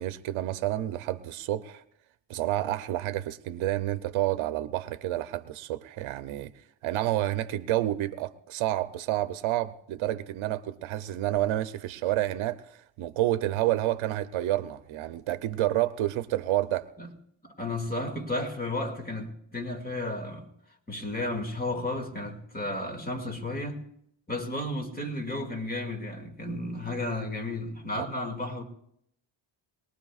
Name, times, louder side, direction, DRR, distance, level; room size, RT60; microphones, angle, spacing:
voice 1, 0.0-1.8 2.3-6.5 6.8-12.6 13.0-16.9 28.0-28.1, right 14 dB, 85° right, 0.7 m, -29 dB
voice 2, 17.4-20.5 20.9-23.8 24.3-28.6, left 2 dB, 20° left, 2.2 m, -33 dB
22.0 x 19.5 x 2.4 m
cardioid pair, 115°, 47 cm